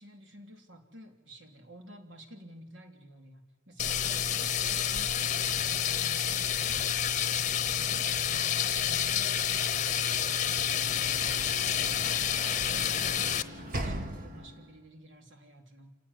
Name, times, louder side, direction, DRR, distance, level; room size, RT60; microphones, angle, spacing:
voice 1, 0.0-9.7 10.1-15.9, equal, 65° right, 4 dB, 3.4 m, -52 dB
sound 1, 3.8-13.4, left 9 dB, 40° left, 0.9 m, -29 dB
Sliding door / Slam, 10.0-14.8, right 1 dB, 45° right, 2.4 m, -41 dB
28.0 x 16.5 x 9.9 m, 1.2 s
head